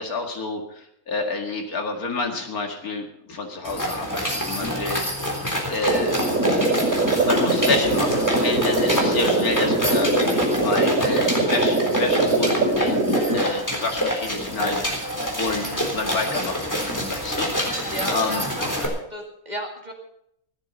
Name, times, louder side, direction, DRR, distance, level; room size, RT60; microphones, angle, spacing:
voice 1, 0.0-6.2 7.2-15.1 15.4-15.7 15.9-18.4, left 3 dB, 80° left, 4 dB, 2.5 m, -29 dB
sound 1, 3.6-18.9, equal, 10° left, 3.7 m, -27 dB
sound 2, 5.9-13.4, right 2 dB, 80° right, 3.0 m, -22 dB
voice 2, 15.6-15.9 17.9-19.9, right 1 dB, 30° right, 1 dB, 2.3 m, -34 dB
16.0 x 13.0 x 5.5 m, 0.74 s
omnidirectional pair, 1.5 m